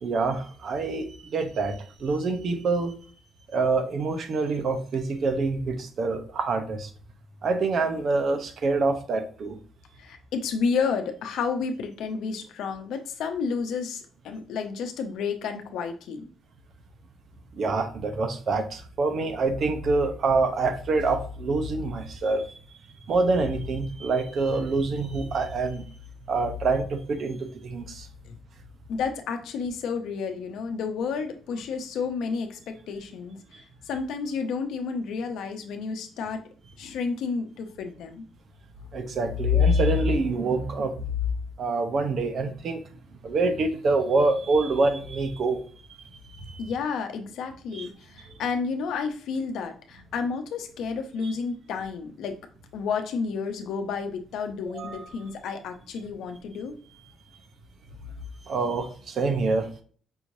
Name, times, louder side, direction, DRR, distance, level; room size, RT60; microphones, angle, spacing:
voice 1, 0.0-3.0 3.5-6.9 7.4-9.6 17.6-22.4 23.1-25.8 26.3-27.4 27.6-28.1 38.9-40.9 41.6-42.8 43.2-45.6 46.4-46.7 47.7-47.9 51.2-51.3 54.7-55.1 58.5-59.7, right 2 dB, 60° right, 7 dB, 0.8 m, -26 dB
voice 2, 10.0-16.3 28.3-28.4 28.9-33.4 33.9-36.4 36.8-38.2 46.6-52.4 52.7-56.7, left 5 dB, 80° left, 6 dB, 0.7 m, -31 dB
5.5 x 3.0 x 2.6 m, 0.43 s
cardioid pair, 90°, 0 cm